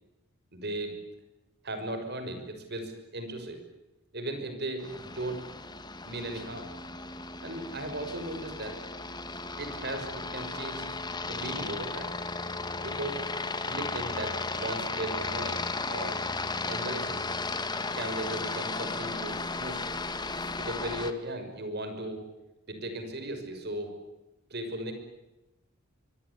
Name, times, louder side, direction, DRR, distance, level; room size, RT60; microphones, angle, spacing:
voice 1, 0.5-1.0 1.6-3.6 4.1-5.4 6.0-6.7 7.4-8.8 9.6-10.9 11.2-12.2 12.8-13.2 13.7-16.2 16.7-17.3 18.0-19.9 20.6-22.2 22.7-23.9 24.5-24.9, right 1 dB, 50° right, 7 dB, 6.0 m, -37 dB
Aircraft, 4.8-21.1, left 3 dB, 20° left, 1.8 m, -35 dB
25.0 x 24.5 x 8.3 m, 0.97 s
head